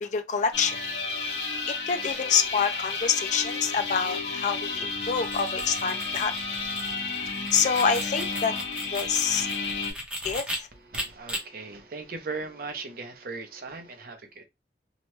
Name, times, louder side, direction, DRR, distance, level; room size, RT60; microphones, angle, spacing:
voice 1, 0.0-0.8 1.7-6.3 7.5-8.6 8.9-9.5 10.2-10.7, left 6 dB, 45° left, 0.4 m, -26 dB
sound 1, 0.5-9.9, left 4 dB, 75° left, 1.1 m, -32 dB
sound 2, 5.1-10.6 10.9-11.4, equal, 5° right, 0.8 m, -36 dB
voice 2, 10.7-14.4, right 4 dB, 55° right, 0.6 m, -38 dB
2.8 x 2.2 x 3.0 m
head